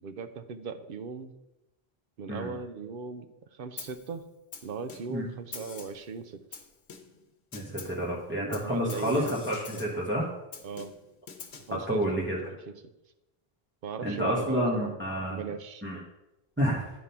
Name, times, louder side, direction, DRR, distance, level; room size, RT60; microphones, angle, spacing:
voice 1, 0.0-1.3 2.2-3.3 3.5-4.2 4.6-6.6 8.6-9.4 10.6-10.9 11.7-12.1 12.7-12.8 13.8-14.9 15.3-15.8, right 5 dB, 65° right, 10 dB, 0.8 m, -38 dB
Snare drum, 3.8-4.1 4.5-5.2 5.5-6.1 6.5-7.2 7.5-8.0 8.5-10.0 10.5-11.8, left 5 dB, 90° left, 1.1 m, -45 dB
voice 2, 7.5-10.3 11.9-12.4 14.0-15.4 15.8-16.0 16.6-16.9, equal, 10° right, -4 dB, 1.1 m, -29 dB
9.6 x 3.6 x 5.6 m, 0.93 s
omnidirectional pair, 1.1 m